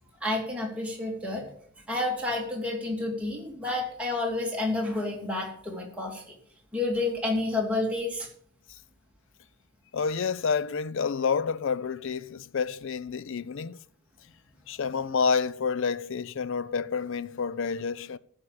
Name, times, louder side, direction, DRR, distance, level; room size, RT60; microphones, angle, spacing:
voice 1, 0.2-1.5 1.9-6.3 6.7-8.3, left 2 dB, 5° right, 2.8 m, -30 dB
voice 2, 9.9-13.8 14.7-18.2, left 5 dB, 60° left, 0.5 m, -29 dB
14.0 x 5.7 x 6.6 m
head